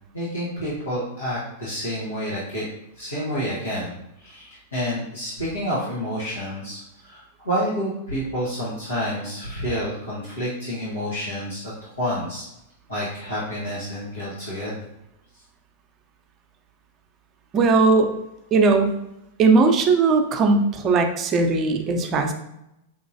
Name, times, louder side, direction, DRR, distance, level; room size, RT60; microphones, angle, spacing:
voice 1, 0.1-2.6 3.0-12.4 12.9-14.9, equal, 90° left, -10 dB, 1.5 m, -29 dB
voice 2, 17.5-18.1 18.5-19.0 19.4-22.3, right 4 dB, 30° right, 4 dB, 0.7 m, -18 dB
5.8 x 3.0 x 2.7 m, 0.84 s
hypercardioid pair, 100°, 0 cm